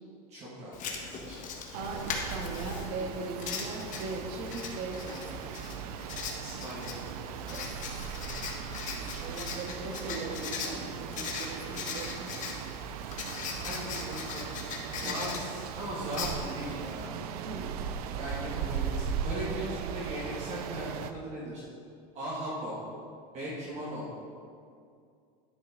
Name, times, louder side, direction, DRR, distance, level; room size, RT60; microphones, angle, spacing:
voice 1, 0.3-1.4 6.4-6.9 9.0-9.5 13.6-14.4 14.9-17.1 18.0-21.6 22.1-22.7 23.3-24.1, right 1 dB, 35° right, -7 dB, 2.3 m, -38 dB
Writing, 0.7-17.1, left 5 dB, 40° left, 1.3 m, -40 dB
voice 2, 1.7-5.4 7.5-7.7 8.9-12.3 15.0-15.2 17.4-17.7, right 3 dB, 60° right, 1 dB, 1.7 m, -39 dB
sound 1, 1.7-21.1, right 7 dB, 85° right, 0.6 m, -38 dB
10.5 x 5.9 x 4.0 m, 2.3 s
supercardioid pair, 120°, 19 cm